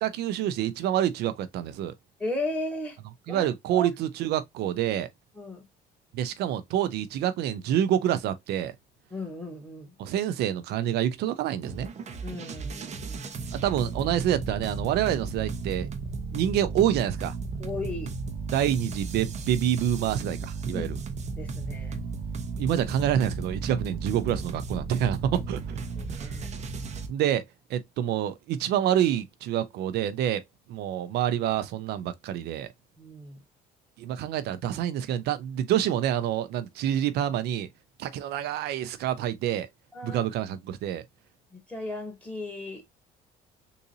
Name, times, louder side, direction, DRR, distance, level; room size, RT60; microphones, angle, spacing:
voice 1, 0.0-1.9 3.3-5.1 6.1-8.7 10.0-11.9 13.5-15.9 16.3-17.3 18.5-21.0 22.6-25.6 26.1-26.4 27.1-27.4 27.7-30.4 30.7-32.7 34.0-37.7 38.0-39.7 40.0-41.0, right 10 dB, 75° right, 0.5 m, -27 dB
voice 2, 2.2-3.0 3.3-3.9 5.3-5.6 9.1-10.0 12.2-13.6 17.6-18.1 20.7-20.9 21.2-22.0 26.0-26.5 33.0-33.4 39.9-40.2 41.5-43.0, left 1 dB, 10° left, 1.9 m, -36 dB
sound 1, 11.6-27.1, right 4 dB, 40° right, 0.8 m, -35 dB
3.8 x 2.6 x 2.6 m
cardioid pair, 110°, 17 cm